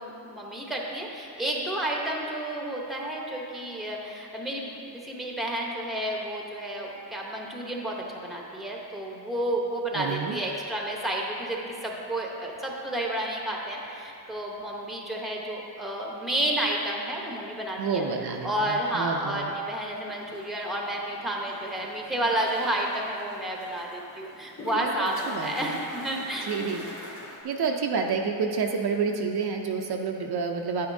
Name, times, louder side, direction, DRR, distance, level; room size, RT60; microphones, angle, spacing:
voice 1, 0.0-18.0 18.4-26.5, right 1 dB, ahead, -1 dB, 0.8 m, -31 dB
voice 2, 9.9-10.4 17.8-19.5 24.7-25.8 26.5-26.8 27.4-30.9, right 5 dB, 60° right, 2 dB, 0.6 m, -29 dB
sound 1, 19.9-27.4, left 1 dB, 45° left, 1.6 m, -44 dB
9.3 x 9.2 x 2.7 m, 2.8 s
wide cardioid pair, 150°, 44 cm